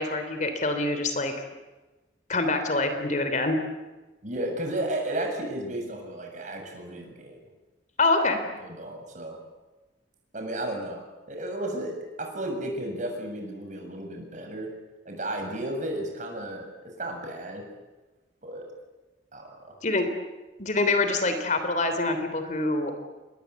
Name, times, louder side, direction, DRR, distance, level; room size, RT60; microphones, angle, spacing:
voice 1, 0.0-1.3 2.3-3.6 8.0-8.4 19.8-20.1 20.6-22.9, left 2 dB, 40° left, 8 dB, 3.3 m, -25 dB
voice 2, 4.2-7.4 8.6-9.4 10.3-11.9 12.2-14.7 15.1-17.6 18.4-18.6 19.3-19.8, right 1 dB, 40° right, 2 dB, 7.3 m, -33 dB
28.5 x 22.5 x 8.4 m, 1.2 s
head